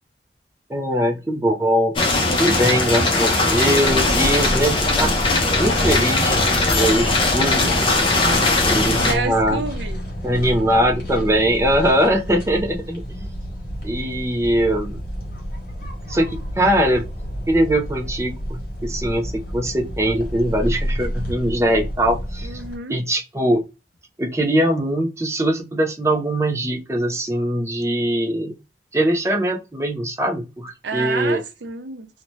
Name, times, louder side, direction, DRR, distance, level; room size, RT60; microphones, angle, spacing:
voice 1, 0.7-1.9 2.4-5.1 5.6-6.4 6.7-7.8 8.6-9.6 10.2-13.3 13.8-15.0 16.1-17.0 17.5-22.6 22.9-23.6 24.2-28.5 28.9-31.4, equal, 15° right, 0.4 m, -21 dB
sound 1, 2.0-9.1, left 2 dB, 30° left, 0.6 m, -19 dB
sound 2, 3.8-22.8, equal, 50° left, 1.1 m, -30 dB
voice 2, 9.0-10.0 22.4-23.0 30.8-32.1, right 4 dB, 85° right, 0.6 m, -28 dB
2.7 x 2.1 x 3.0 m
head